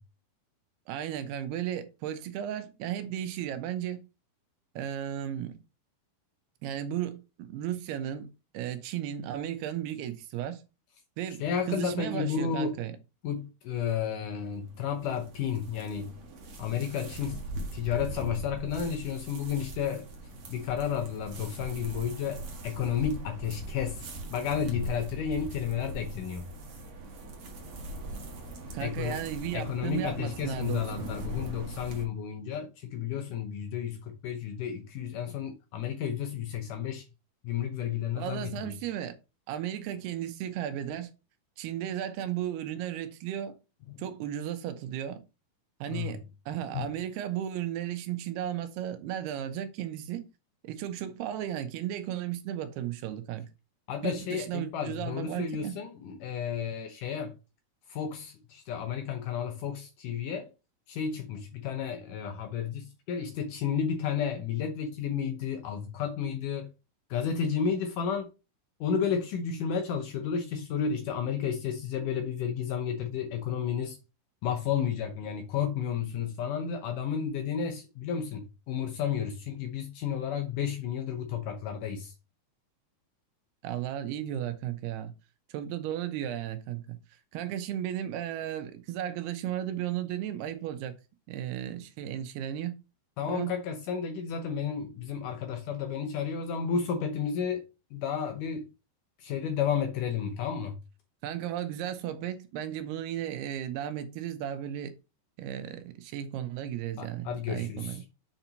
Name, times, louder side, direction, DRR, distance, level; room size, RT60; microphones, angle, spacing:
voice 1, 0.9-4.0 4.8-5.6 6.6-8.3 8.5-10.6 11.2-13.0 28.7-31.1 38.2-39.2 39.5-41.1 41.6-43.6 44.0-45.2 45.8-46.2 46.5-50.3 50.6-53.5 54.0-55.7 83.6-85.1 85.5-87.0 87.3-91.0 91.3-92.8 93.3-93.5 101.2-105.0 105.4-108.0, right 11 dB, 85° right, 2.9 m, -35 dB
voice 2, 11.4-12.8 13.2-16.1 16.6-17.4 17.7-20.1 20.5-24.0 24.3-26.5 28.8-29.2 29.5-37.0 37.4-38.7 43.9-44.0 45.9-46.2 46.7-46.9 53.9-57.4 57.9-60.5 60.9-66.7 67.1-68.3 68.8-74.0 74.4-82.1 93.2-97.6 97.9-98.7 99.2-100.8 107.0-108.0, left 7 dB, 75° left, 2.0 m, -32 dB
sound 1, 14.3-32.0, right 2 dB, 50° right, 1.8 m, -41 dB
7.9 x 4.5 x 4.0 m
omnidirectional pair, 4.5 m